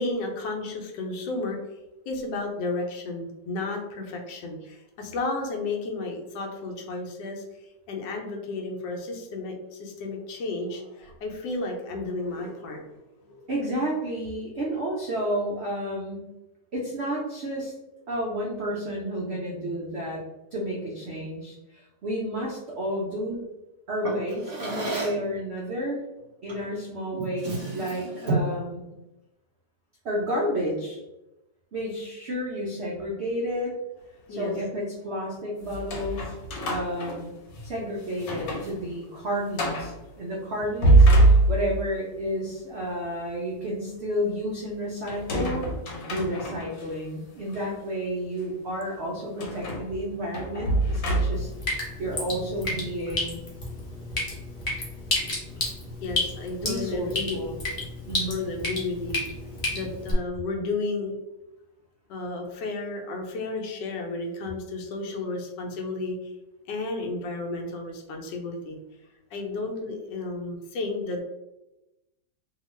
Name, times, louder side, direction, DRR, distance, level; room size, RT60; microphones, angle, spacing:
voice 1, 0.0-1.6 2.1-7.4 7.9-12.9 13.2-13.5 34.3-34.5 40.0-40.2 56.0-57.4 58.3-59.2 59.7-61.1 62.1-66.2 66.7-68.8 69.3-71.2, left 3 dB, 80° left, 2 dB, 1.2 m, -32 dB
voice 2, 13.5-16.3 16.7-17.7 18.1-20.2 20.5-23.5 23.9-26.0 26.4-28.8 30.0-31.0 31.7-33.7 34.3-36.3 36.6-37.3 37.6-45.7 46.1-53.4 56.6-57.5 58.1-58.4, equal, 85° right, -4 dB, 0.5 m, -31 dB
Drawer open or close, 24.0-25.3 26.5-26.7 27.1-28.6, right 2 dB, 35° right, 1.2 m, -31 dB
sound 1, 35.7-37.7 38.1-38.7 39.0-39.1 39.5-40.0 40.6-41.9 45.1-46.8 47.5-47.6 49.4-51.6, right 2 dB, 60° left, 1.1 m, -23 dB
Drip, 51.3-60.1, left 2 dB, 40° left, 0.7 m, -32 dB
2.9 x 2.3 x 3.0 m, 0.97 s
omnidirectional pair, 1.9 m